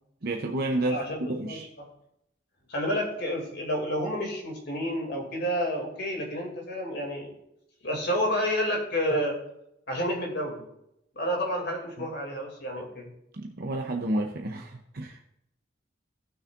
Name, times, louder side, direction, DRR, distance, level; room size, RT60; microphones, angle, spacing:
voice 1, 0.2-1.0 1.3-1.7 12.0-12.1 13.3-15.2, right 1 dB, 55° right, 2 dB, 0.8 m, -30 dB
voice 2, 0.9-1.6 2.7-7.3 7.8-9.4 9.9-10.6 11.2-13.1, equal, 60° left, 1 dB, 2.6 m, -30 dB
17.5 x 6.4 x 2.5 m, 0.80 s
head